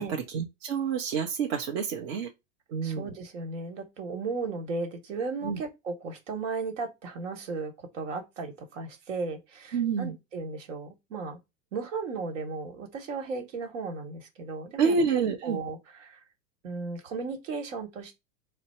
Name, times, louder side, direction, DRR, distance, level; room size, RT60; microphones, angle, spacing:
voice 1, 0.0-2.3 2.7-3.1 5.4-5.6 9.7-10.1 14.8-15.6, right 5 dB, 50° right, 0.7 m, -28 dB
voice 2, 2.8-11.4 11.7-16.2 16.6-18.2, right 4 dB, 70° right, 1.3 m, -35 dB
4.2 x 2.0 x 4.2 m
supercardioid pair, 180°, 39 cm